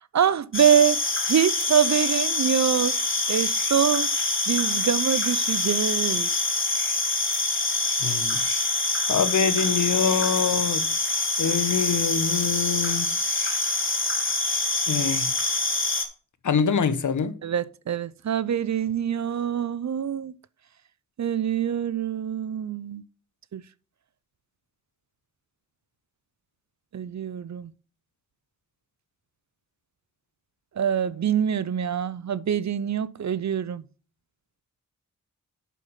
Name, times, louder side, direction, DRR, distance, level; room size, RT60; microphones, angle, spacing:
voice 1, 0.1-1.0 1.3-3.0 3.3-4.1 4.5-6.3 17.4-20.3 21.2-23.0 23.5-23.6 26.9-27.7 30.8-33.8, right 9 dB, 55° right, 0.6 m, -24 dB
sound 1, 0.5-16.1, left 2 dB, 35° left, 2.5 m, -25 dB
voice 2, 8.0-8.4 9.1-10.9 11.4-13.1 14.9-15.3 16.4-17.4, left 6 dB, 60° left, 1.1 m, -25 dB
8.4 x 5.5 x 5.6 m
cardioid pair, 45°, 34 cm